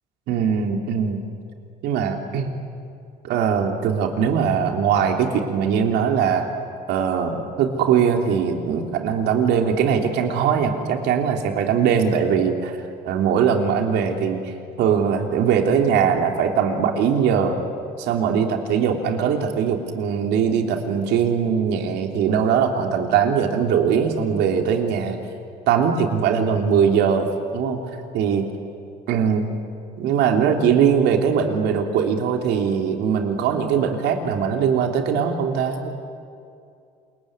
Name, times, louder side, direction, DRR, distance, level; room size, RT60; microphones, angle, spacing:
voice 1, 0.3-1.2 1.8-2.5 3.2-6.5 6.9-12.7 13.0-14.5 14.8-17.6 18.0-25.2 25.7-27.8 28.1-28.4 29.1-29.5 30.0-35.9, right 7 dB, 85° right, 3 dB, 3.3 m, -21 dB
28.0 x 22.0 x 9.7 m, 2.5 s
cardioid pair, 110°, 17 cm